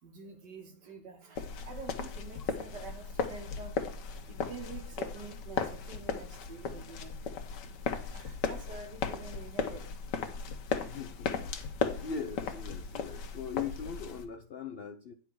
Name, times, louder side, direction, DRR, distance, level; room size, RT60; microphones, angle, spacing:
voice 1, 0.0-3.8 4.3-7.2 8.1-9.9, right 4 dB, 80° right, 5 dB, 2.2 m, -47 dB
sound 1, 1.4-14.2, left 6 dB, 90° left, 1.6 m, -36 dB
voice 2, 10.8-11.5 11.8-15.1, left 6 dB, 75° left, 8 dB, 0.5 m, -40 dB
9.8 x 4.4 x 6.2 m, 0.40 s
omnidirectional pair, 1.8 m